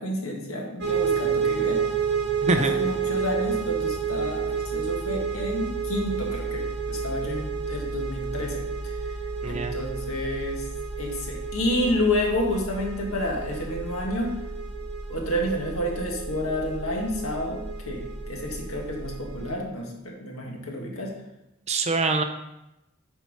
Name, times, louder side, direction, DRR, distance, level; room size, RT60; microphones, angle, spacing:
voice 1, 0.0-1.8 2.5-8.6 9.5-10.6 11.0-14.3 15.1-21.1, left 1 dB, 75° left, 0 dB, 1.8 m, -30 dB
sound 1, 0.8-19.5, right 6 dB, 55° right, 1.6 m, -30 dB
voice 2, 2.4-2.7 9.4-9.7 21.7-22.2, right 3 dB, 30° right, 7 dB, 0.5 m, -24 dB
8.5 x 4.6 x 5.4 m, 0.91 s
head